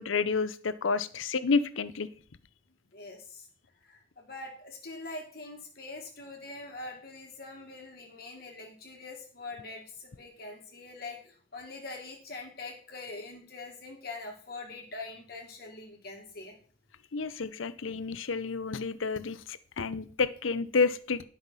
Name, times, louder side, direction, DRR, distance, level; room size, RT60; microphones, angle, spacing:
voice 1, 0.0-2.1 17.1-19.4 19.8-21.2, left 4 dB, 90° left, 15 dB, 0.7 m, -29 dB
voice 2, 2.9-3.5 3.8-16.6, left 3 dB, 50° left, 0 dB, 1.8 m, -43 dB
11.0 x 5.9 x 5.5 m, 0.43 s
head